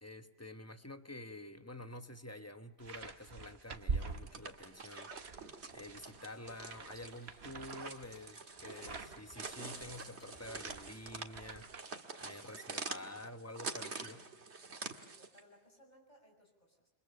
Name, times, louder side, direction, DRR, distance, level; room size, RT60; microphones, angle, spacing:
voice 1, 0.0-5.1 5.7-11.7 12.2-14.3, left 1 dB, 15° left, 1.1 m, -49 dB
sound 1, 2.8-4.7 5.1-11.8, right 4 dB, 70° right, 1.5 m, -45 dB
sound 2, 4.1-15.4, right 4 dB, 85° right, 2.1 m, -47 dB
Engine, 6.3-12.0, left 2 dB, 70° left, 4.1 m, -65 dB
voice 2, 12.3-13.1 14.8-16.9, equal, 40° left, 6.7 m, -64 dB
29.0 x 25.5 x 6.9 m
omnidirectional pair, 1.1 m